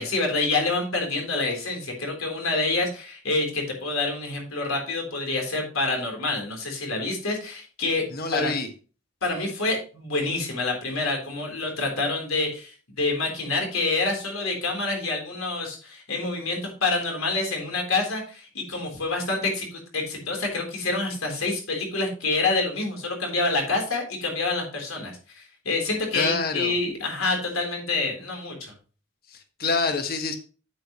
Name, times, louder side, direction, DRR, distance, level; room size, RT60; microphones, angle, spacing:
voice 1, 0.0-8.0 8.3-8.5 9.2-28.7, left 3 dB, 90° left, 2 dB, 3.8 m, -27 dB
voice 2, 8.1-8.7 26.1-26.8 29.3-30.3, left 4 dB, 45° left, 6 dB, 1.4 m, -27 dB
9.2 x 8.4 x 3.1 m, 0.35 s
head